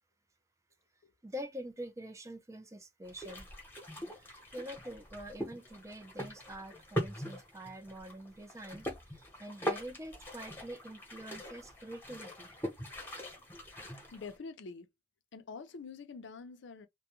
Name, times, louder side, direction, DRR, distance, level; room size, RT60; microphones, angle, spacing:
voice 1, 1.2-3.5 4.1-8.9 9.1-12.5, equal, 15° right, 0.5 m, -46 dB
sound 1, 3.0-14.4, equal, 10° left, 0.9 m, -42 dB
voice 2, 14.1-14.9 15.3-16.9, left 4 dB, 75° left, 0.5 m, -46 dB
2.2 x 2.1 x 2.9 m
head